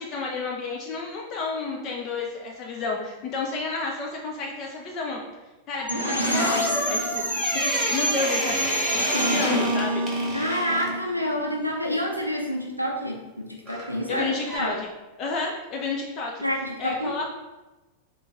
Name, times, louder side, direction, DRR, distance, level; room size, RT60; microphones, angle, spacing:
voice 1, 0.0-5.2 5.7-8.6 8.9-10.1 14.1-14.8 15.2-16.4 16.8-17.3, left 3 dB, 35° left, -1 dB, 0.6 m, -31 dB
sound 1, 5.7-10.9 13.7-14.0 14.5-14.6, equal, 10° right, 1.2 m, -30 dB
sound 2, 5.9-11.7, equal, 85° left, 0.6 m, -27 dB
voice 2, 10.3-14.8 16.4-17.3, equal, 90° right, 0 dB, 0.6 m, -28 dB
3.7 x 3.7 x 3.4 m, 1.1 s
figure-of-eight pair, 90°, 0 cm